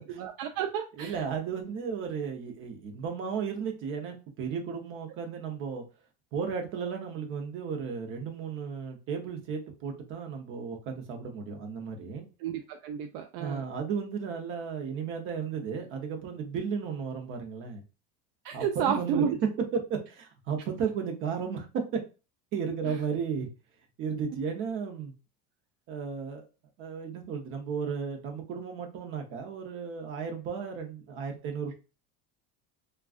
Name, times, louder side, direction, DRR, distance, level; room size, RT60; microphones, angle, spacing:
voice 1, 0.2-1.1 12.4-13.6 18.4-19.3 22.9-23.0, right 8 dB, 65° right, 0.4 m, -31 dB
voice 2, 1.0-5.8 6.3-12.3 13.4-17.8 18.5-19.2 19.7-21.7 22.5-23.5 24.0-25.1 25.9-26.5 26.8-31.7, right 6 dB, 40° right, 0.8 m, -34 dB
3.6 x 2.3 x 2.4 m
cardioid pair, 160°, 32 cm